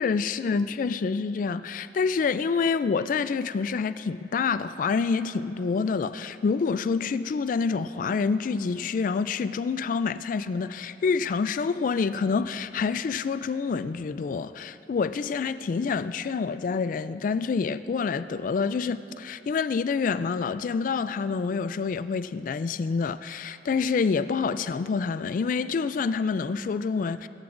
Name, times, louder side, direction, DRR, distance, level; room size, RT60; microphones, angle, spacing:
voice 1, 0.0-27.3, left 5 dB, 50° left, 0.3 m, -27 dB
22.5 x 13.0 x 2.5 m
head